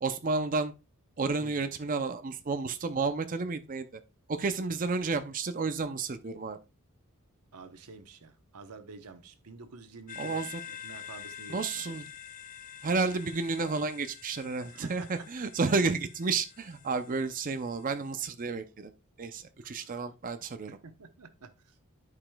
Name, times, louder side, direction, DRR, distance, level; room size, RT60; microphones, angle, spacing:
voice 1, 0.0-0.7 1.2-3.9 4.3-6.6 10.2-10.6 11.5-12.1 12.8-18.9 19.2-20.7, right 4 dB, 40° right, 0.5 m, -31 dB
voice 2, 7.5-11.8 14.7-15.5 19.6-20.0 20.7-21.8, right 4 dB, 90° right, 0.9 m, -49 dB
sound 1, 10.1-18.3, left 9 dB, 35° left, 0.7 m, -47 dB
12.0 x 5.0 x 2.3 m
head